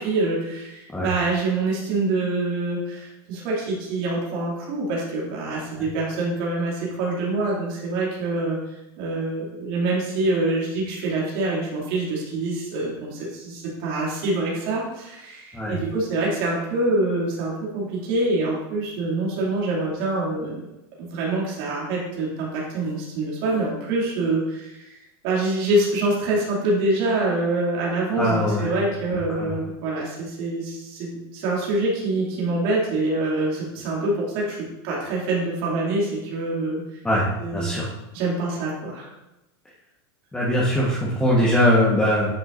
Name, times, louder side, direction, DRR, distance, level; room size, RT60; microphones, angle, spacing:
voice 1, 0.0-8.6 9.0-20.7 21.0-25.0 25.2-36.8 37.4-37.8 38.1-39.1, right 2 dB, 60° right, -5 dB, 2.5 m, -25 dB
voice 2, 28.2-28.8 29.4-29.5 37.0-37.3 37.5-37.9 40.3-42.3, equal, 5° left, -6 dB, 1.3 m, -21 dB
9.3 x 6.0 x 2.6 m, 0.92 s
supercardioid pair, 130°, 14 cm